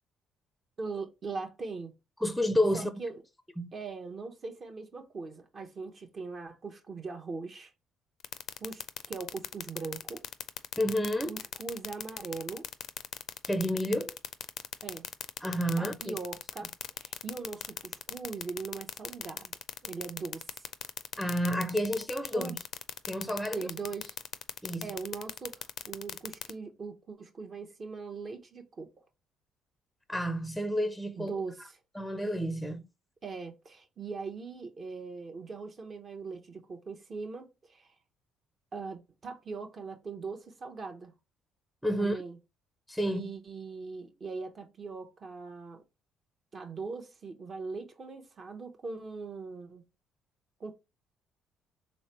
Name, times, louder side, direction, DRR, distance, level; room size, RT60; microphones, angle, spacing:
voice 1, 0.8-1.9 2.7-3.2 3.7-7.7 8.6-10.2 11.3-12.7 14.8-15.1 15.8-19.5 19.8-20.7 22.3-22.6 23.5-24.2 24.8-28.9 31.2-31.8 33.2-37.9 38.7-41.1 42.0-42.4 43.0-45.8 46.5-49.8 50.6-50.7, right 4 dB, 45° right, 0.7 m, -40 dB
voice 2, 2.2-3.0 3.6-3.7 10.8-11.3 13.4-14.2 15.4-16.1 21.2-22.6 23.1-23.6 24.6-24.9 30.1-31.3 31.9-32.9 41.8-42.2 42.9-43.3, equal, ahead, 0.5 m, -30 dB
sound 1, 8.2-26.5, left 9 dB, 65° left, 0.4 m, -37 dB
3.3 x 3.1 x 2.9 m
supercardioid pair, 70°, 0 cm